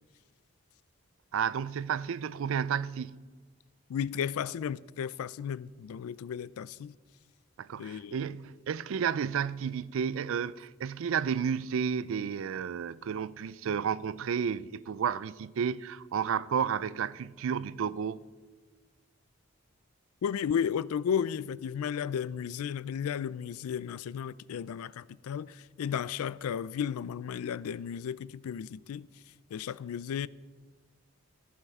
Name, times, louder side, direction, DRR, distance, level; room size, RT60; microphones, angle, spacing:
voice 1, 1.3-3.2 7.6-18.2, right 7 dB, 65° right, 0.3 m, -32 dB
voice 2, 3.9-6.9 7.8-8.2 20.2-29.1 29.5-30.3, left 8 dB, 85° left, 0.3 m, -34 dB
15.0 x 8.7 x 3.6 m
head